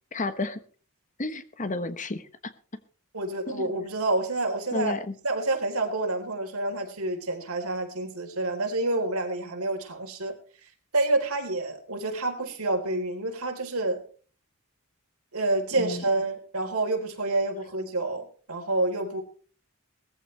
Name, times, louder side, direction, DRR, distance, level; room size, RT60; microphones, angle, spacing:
voice 1, 0.1-0.6 1.2-2.5 3.5-3.7 4.7-5.1 15.8-16.0, left 2 dB, 35° left, 11 dB, 1.1 m, -32 dB
voice 2, 3.1-4.9 5.2-10.3 10.6-14.0 15.3-19.2, right 2 dB, 70° right, 3 dB, 3.8 m, -28 dB
19.0 x 14.5 x 3.3 m, 0.41 s
head